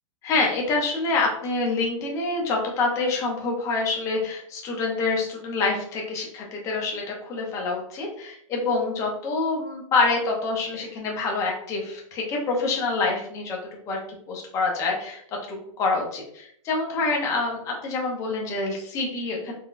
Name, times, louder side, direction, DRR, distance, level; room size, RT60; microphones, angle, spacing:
voice 1, 0.2-13.6 13.9-14.0 14.3-15.2 15.5-19.5, left 3 dB, 20° left, 0 dB, 0.6 m, -26 dB
3.8 x 2.2 x 2.4 m, 0.69 s
hypercardioid pair, 155°, 17 cm